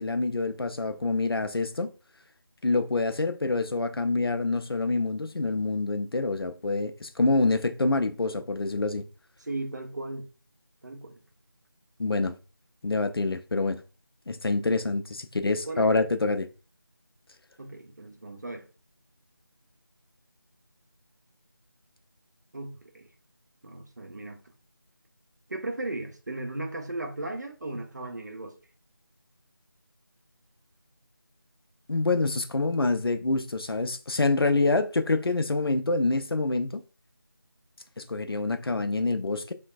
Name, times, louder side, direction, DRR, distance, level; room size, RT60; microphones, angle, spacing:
voice 1, 0.0-1.9 2.6-9.0 12.0-12.4 12.8-13.8 14.3-16.5 31.9-36.8 38.0-39.5, left 3 dB, 85° left, 0.4 m, -26 dB
voice 2, 9.4-10.3 10.8-11.2 14.8-14.9 15.7-16.0 17.6-18.7 22.5-23.1 23.6-24.4 25.5-28.6, right 2 dB, 50° right, 0.6 m, -36 dB
3.2 x 2.2 x 2.3 m
figure-of-eight pair, 165°, 12 cm